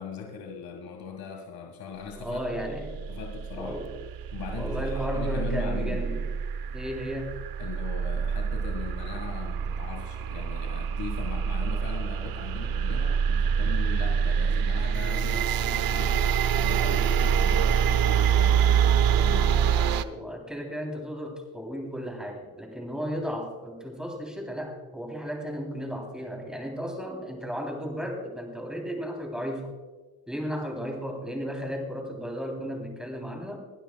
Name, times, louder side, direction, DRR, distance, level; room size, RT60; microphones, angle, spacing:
voice 1, 0.0-2.4 2.9-3.8 4.3-6.1 7.6-19.9, left 6 dB, 50° left, 3 dB, 1.8 m, -39 dB
voice 2, 2.2-3.0 3.6-3.9 4.6-6.3 6.7-7.3 19.9-29.7 30.3-33.6, equal, ahead, 1 dB, 3.3 m, -34 dB
sound 1, 2.4-20.0, right 7 dB, 55° right, 0.7 m, -26 dB
21.5 x 12.0 x 2.3 m, 1.3 s
cardioid pair, 125°, 44 cm